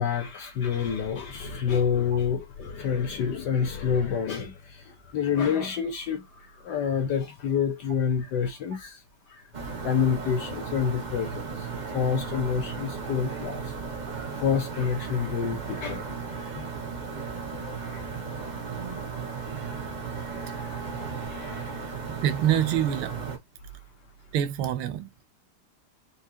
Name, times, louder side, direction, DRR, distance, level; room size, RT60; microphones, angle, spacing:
voice 1, 0.0-9.0 9.3-9.4 9.8-13.7 14.4-16.1 16.4-16.7 17.6-19.2 20.1-21.7, left 7 dB, 70° left, 1.0 m, -29 dB
sound 1, 9.5-23.4, right 5 dB, 50° right, 0.5 m, -35 dB
voice 2, 22.1-23.2 24.3-25.1, right 10 dB, 80° right, 1.4 m, -25 dB
4.9 x 2.7 x 2.7 m
omnidirectional pair, 2.4 m